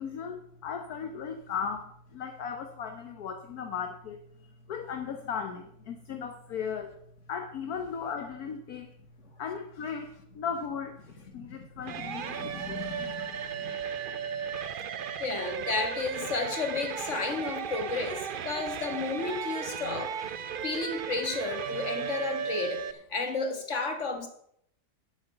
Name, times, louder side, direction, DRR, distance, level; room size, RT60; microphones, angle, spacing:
voice 1, 0.0-4.3 4.7-6.9 7.3-8.9 9.4-11.0 11.3-14.7, left 6 dB, 65° left, 6 dB, 1.4 m, -37 dB
voice 2, 11.8-13.8 15.2-24.3, left 4 dB, 45° left, 4 dB, 2.0 m, -33 dB
sound 1, 11.9-22.9, right 7 dB, 80° right, 0.4 m, -35 dB
10.5 x 8.1 x 6.8 m, 0.70 s
omnidirectional pair, 1.8 m